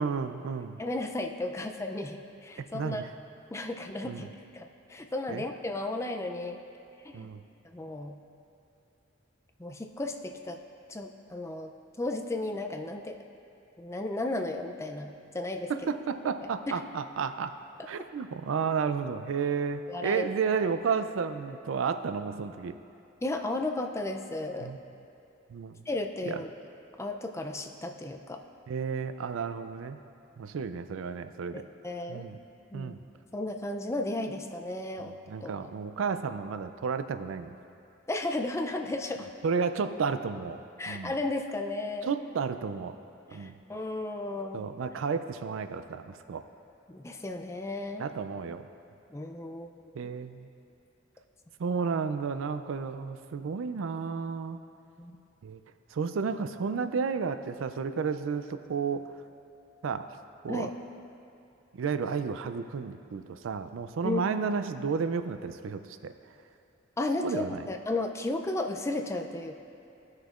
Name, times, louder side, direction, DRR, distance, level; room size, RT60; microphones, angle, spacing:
voice 1, 0.0-0.8 2.6-3.1 4.0-4.3 5.3-5.4 7.1-7.4 15.7-17.5 17.9-22.7 24.6-24.8 25.5-25.8 26.2-26.4 28.7-30.0 30.4-31.6 32.1-32.4 32.7-33.0 35.0-37.5 39.4-41.1 42.1-43.0 43.3-43.5 44.5-46.4 48.0-48.7 49.9-50.5 51.6-54.6 55.4-55.6 55.9-59.2 59.8-60.0 60.4-60.7 61.7-66.1 67.2-67.6, right 5 dB, 90° right, 10 dB, 0.4 m, -32 dB
voice 2, 0.8-3.0 3.5-4.3 4.5-6.6 7.0-7.3 7.6-8.2 9.6-10.6 10.9-11.7 12.0-13.2 13.8-15.7 16.7-16.8 19.9-20.3 23.2-24.7 25.9-26.5 27.0-28.4 31.5-32.3 32.7-33.0 33.3-35.5 38.1-39.3 40.8-42.1 43.3-44.7 46.9-48.1 49.1-49.9 55.0-55.2 60.5-60.7 64.0-64.3 67.0-69.6, left 2 dB, 15° left, 4 dB, 0.4 m, -34 dB
15.0 x 6.4 x 2.5 m, 2.7 s
head